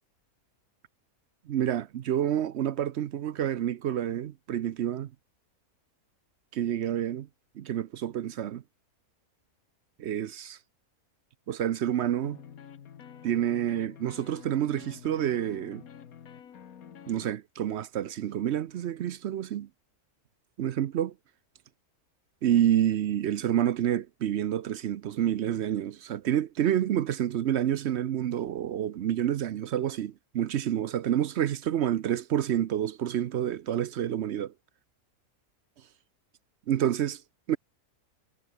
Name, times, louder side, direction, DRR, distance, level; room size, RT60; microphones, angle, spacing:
voice 1, 1.5-5.1 6.5-7.3 7.6-8.6 10.0-10.6 11.5-12.4 13.2-15.8 17.1-19.7 20.6-21.1 22.4-34.5 36.7-37.2 37.5-37.6, right 10 dB, 60° right, 0.7 m, -28 dB
sound 1, 12.2-17.3, left 8 dB, 70° left, 1.6 m, -48 dB
omnidirectional pair, 1.6 m